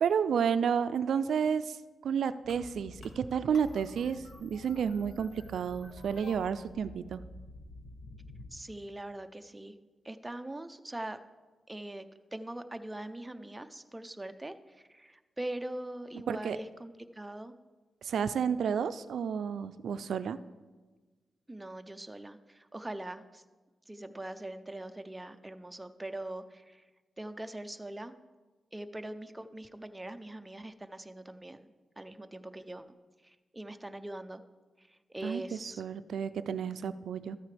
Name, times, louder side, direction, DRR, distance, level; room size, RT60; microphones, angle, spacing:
voice 1, 0.0-1.8 2.0-7.2 16.3-16.6 18.0-20.4 35.2-37.4, right 7 dB, 85° right, 13 dB, 0.3 m, -31 dB
sound 1, 2.4-8.5, left 2 dB, 75° left, 1.3 m, -49 dB
voice 2, 8.5-9.8 10.0-11.2 11.7-17.5 21.5-23.4 23.9-26.8 27.2-28.1 28.7-31.7 32.0-32.9 33.2-34.4 34.8-35.8, right 1 dB, 10° right, 9 dB, 0.5 m, -42 dB
13.0 x 9.1 x 3.3 m, 1.3 s
cardioid pair, 100°, 0 cm